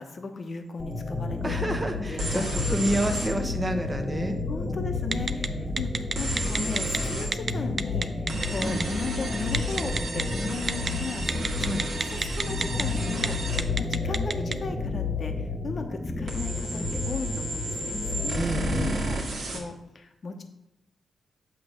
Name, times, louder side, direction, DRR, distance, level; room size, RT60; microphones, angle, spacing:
voice 1, 0.0-2.4 4.5-5.9 6.2-8.1 8.5-11.7 12.2-19.2 19.5-20.4, left 4 dB, 50° left, 6 dB, 1.0 m, -36 dB
sound 1, 0.8-19.2, left 3 dB, 15° left, 0.9 m, -31 dB
voice 2, 1.4-4.4 8.6-8.8 11.6-11.9 18.3-19.1, right 1 dB, 15° right, 5 dB, 1.0 m, -29 dB
sound 2, 2.2-3.3 6.2-7.3 8.3-13.7 16.3-19.6, right 2 dB, 70° right, 1.8 m, -33 dB
Telephone, 5.1-5.5 5.8-7.0 7.3-7.5 7.8-8.8 9.5-10.2 10.7-10.9 11.3-12.8 13.1-13.3 13.6-14.5, right 4 dB, 40° right, 0.4 m, -27 dB
8.1 x 3.3 x 6.3 m, 0.89 s
cardioid pair, 85°, 0 cm